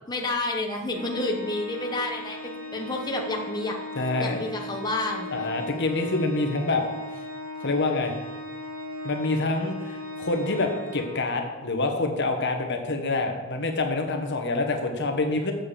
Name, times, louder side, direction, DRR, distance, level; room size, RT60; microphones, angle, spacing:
voice 1, 0.1-3.8 4.2-5.3, left 2 dB, 20° left, 1 dB, 1.1 m, -29 dB
Organ, 0.9-11.7, left 1 dB, 70° right, 1.7 m, -38 dB
voice 2, 4.0-4.4 5.3-6.8 7.6-8.1 9.0-15.5, left 2 dB, 55° left, 4 dB, 1.3 m, -26 dB
7.6 x 7.6 x 6.8 m, 1.2 s
head